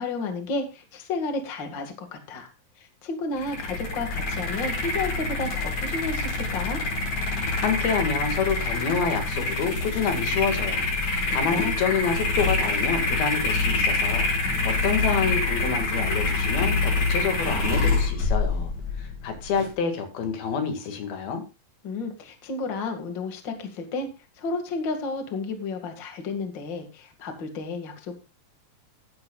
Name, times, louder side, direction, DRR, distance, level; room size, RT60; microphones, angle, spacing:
voice 1, 0.0-2.5 2.8-6.8 11.3-11.7 21.8-24.1 24.4-28.2, left 3 dB, 35° left, 5 dB, 2.2 m, -32 dB
sound 1, 3.4-19.7, left 3 dB, 60° left, 7.2 m, -26 dB
voice 2, 7.6-14.3 14.7-18.7 19.0-21.4, left 6 dB, 90° left, 5 dB, 4.0 m, -28 dB
14.5 x 12.0 x 2.4 m, 0.29 s
omnidirectional pair, 4.2 m